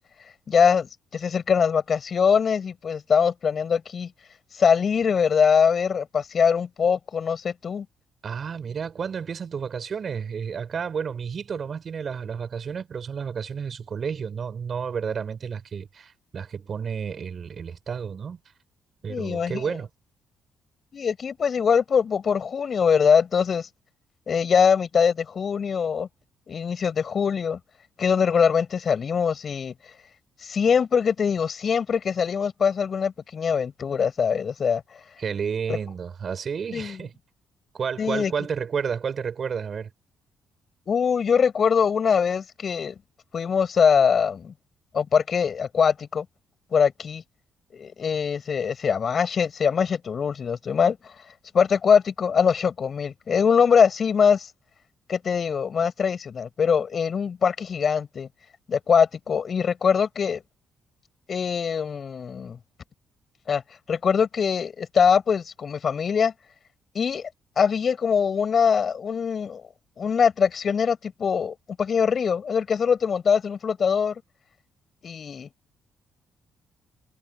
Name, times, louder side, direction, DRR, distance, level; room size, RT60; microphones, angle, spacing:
voice 1, 0.5-4.1 4.6-7.9 19.1-19.6 20.9-23.7 24.3-26.1 26.5-27.6 28.0-29.7 30.4-34.8 36.7-37.0 38.0-38.3 40.9-42.9 43.3-44.5 44.9-46.3 46.7-47.2 47.7-51.1 51.5-54.5 55.1-58.3 58.7-60.4 61.3-62.6 63.5-63.6 63.9-66.3 66.9-67.3 67.6-69.6 70.0-74.1 75.0-75.5, left 6 dB, 50° left, 7.6 m, -22 dB
voice 2, 8.2-18.4 19.0-19.9 35.2-37.1 37.7-39.9, right 6 dB, 50° right, 5.6 m, -31 dB
cardioid pair, 90°, 0 cm